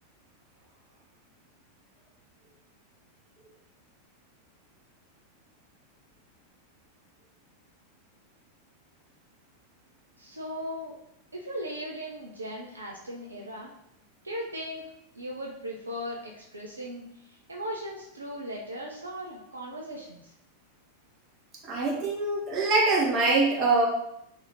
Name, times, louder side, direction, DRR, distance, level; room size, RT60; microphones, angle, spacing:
voice 1, 10.2-10.9 11.3-13.7 14.2-14.8 15.1-20.3, equal, 80° right, -2 dB, 0.5 m, -38 dB
voice 2, 21.6-23.9, right 3 dB, 35° right, -3 dB, 1.2 m, -24 dB
2.8 x 2.7 x 3.7 m, 0.77 s
figure-of-eight pair, 90°, 0 cm